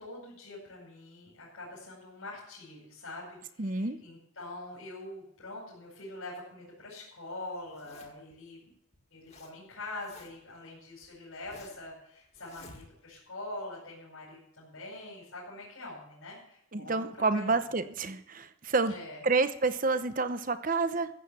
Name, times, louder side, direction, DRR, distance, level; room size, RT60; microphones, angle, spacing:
voice 1, 0.0-8.7 9.1-17.6 18.9-19.2, left 2 dB, 85° left, -5 dB, 5.1 m, -44 dB
voice 2, 3.6-4.0 16.7-18.9 19.2-21.1, right 3 dB, 40° right, 11 dB, 0.9 m, -29 dB
Zipper (clothing), 7.6-8.3 8.9-9.5 9.8-10.5 11.0-11.9 12.3-13.2, left 3 dB, 30° left, 2.0 m, -53 dB
14.5 x 8.2 x 6.8 m, 0.78 s
head